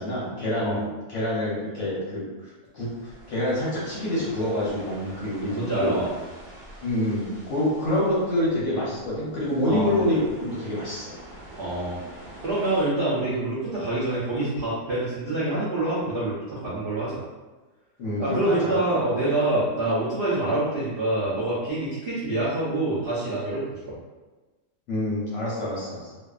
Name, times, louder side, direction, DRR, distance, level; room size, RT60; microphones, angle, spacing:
voice 1, 0.0-6.0 6.8-11.1 11.8-11.9 18.0-18.8 24.9-26.1, left 1 dB, 60° left, -7 dB, 0.8 m, -27 dB
sound 1, 2.8-12.9, right 1 dB, 45° right, 0.9 m, -46 dB
voice 2, 5.5-6.1 9.7-10.0 11.6-12.0 12.4-17.2 18.2-23.9, right 2 dB, 65° right, -10 dB, 0.5 m, -26 dB
2.5 x 2.4 x 2.3 m, 1.2 s
omnidirectional pair, 1.8 m